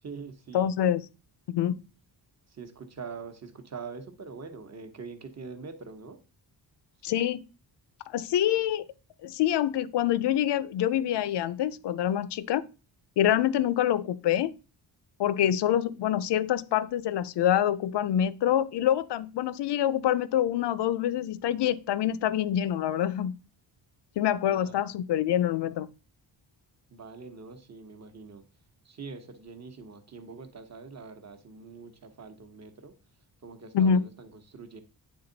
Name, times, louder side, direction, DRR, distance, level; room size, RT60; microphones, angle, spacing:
voice 1, 0.0-0.7 2.5-6.2 7.0-7.1 24.4-24.9 26.9-28.4 28.8-32.9 33.4-34.8, right 5 dB, 35° right, 1.0 m, -44 dB
voice 2, 0.5-1.0 1.5-1.8 7.0-7.4 8.1-8.8 9.2-12.6 13.2-14.5 15.2-23.3 24.2-25.9 33.7-34.0, left 10 dB, 65° left, 0.5 m, -26 dB
8.8 x 3.6 x 3.9 m
wide cardioid pair, 115°, 44 cm